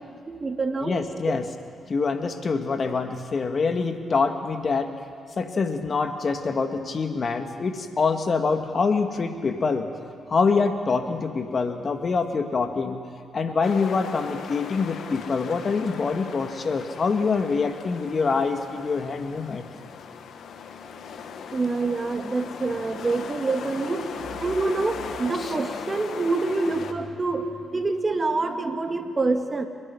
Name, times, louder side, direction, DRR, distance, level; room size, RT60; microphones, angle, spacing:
voice 1, 0.3-1.0 1.3-1.4 21.5-24.1 24.4-29.7, right 3 dB, 35° right, 6 dB, 1.8 m, -26 dB
voice 2, 0.8-1.5 1.9-4.9 5.4-9.9 10.3-13.0 13.3-19.7 25.4-25.5, left 4 dB, 45° left, 6 dB, 1.8 m, -25 dB
sound 1, 13.6-26.9, left 6 dB, 70° left, 1.5 m, -38 dB
29.5 x 11.0 x 9.7 m, 2.2 s
supercardioid pair, 55°, 0 cm